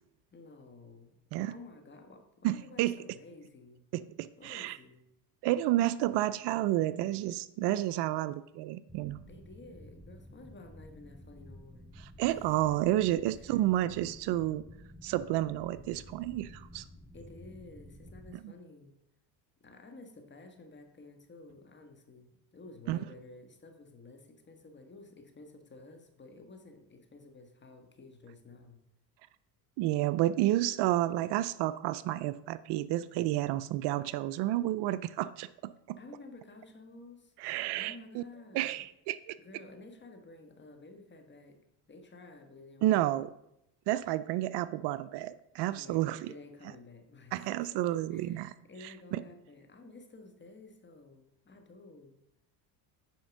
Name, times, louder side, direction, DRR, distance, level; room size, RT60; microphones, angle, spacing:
voice 1, 0.3-1.2 1.5-3.8 4.4-5.1 9.3-12.0 12.3-13.6 17.1-18.9 19.6-28.8 36.0-37.3 37.7-38.8 39.4-41.6 41.9-43.1 45.7-47.7 48.1-52.2, left 2 dB, 25° left, 5 dB, 1.5 m, -52 dB
voice 2, 2.4-3.0 3.9-4.8 5.4-9.2 12.0-14.6 15.0-16.8 22.9-23.0 29.8-36.0 37.4-38.2 38.5-39.4 42.8-43.3 43.9-46.3 47.3-48.5 48.8-49.2, right 14 dB, 65° right, 15 dB, 0.5 m, -30 dB
sound 1, 8.9-18.3, equal, ahead, 0.3 m, -52 dB
9.3 x 5.1 x 5.2 m, 0.80 s
supercardioid pair, 100°, 45 cm